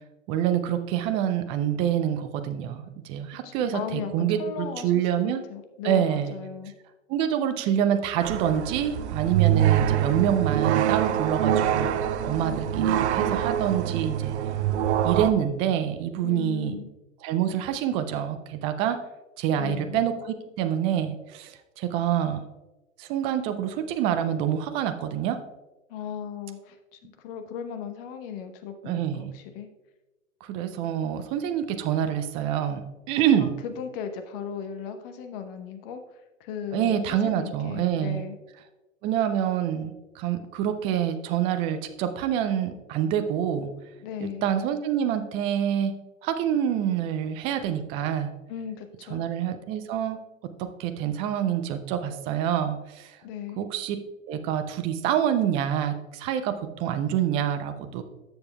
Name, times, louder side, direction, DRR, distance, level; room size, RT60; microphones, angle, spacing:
voice 1, 0.3-5.4 5.8-6.4 7.1-11.9 12.2-14.4 15.0-16.8 17.2-19.0 19.4-22.4 23.0-25.4 28.9-29.3 30.4-33.5 36.7-38.2 39.0-43.7 44.2-45.9 46.2-48.3 49.1-50.2 50.6-53.2 53.6-54.0 54.3-58.0, right 10 dB, 15° right, 9 dB, 0.3 m, -26 dB
voice 2, 3.4-6.7 16.2-16.9 19.5-20.0 25.9-29.7 33.4-36.0 36.4-38.4 44.0-44.5 48.5-49.2 53.2-53.6, left 7 dB, 45° left, 7 dB, 1.1 m, -37 dB
sound 1, 8.2-15.3, right 10 dB, 60° right, 0.7 m, -25 dB
12.5 x 7.1 x 2.3 m, 1.1 s
figure-of-eight pair, 100°, 39 cm